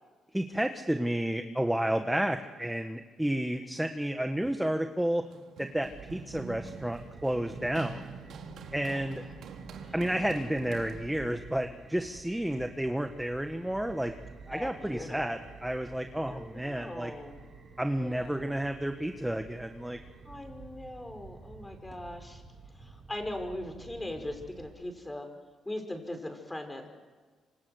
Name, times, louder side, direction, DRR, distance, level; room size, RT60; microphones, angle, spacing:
voice 1, 0.3-5.2 5.6-8.1 8.7-9.2 9.9-14.2 14.5-17.1 17.8-20.0, right 1 dB, 5° right, 6 dB, 1.5 m, -31 dB
Run, 5.0-11.4, right 5 dB, 75° right, 3.0 m, -46 dB
sound 1, 5.7-24.7, right 4 dB, 30° right, 6.7 m, -50 dB
voice 2, 14.5-15.3 16.2-17.4 18.0-18.5 20.3-22.4 22.8-25.3 25.7-26.9, left 1 dB, 15° left, 5 dB, 5.4 m, -40 dB
26.5 x 26.0 x 8.1 m, 1.4 s
cardioid pair, 90°, 0 cm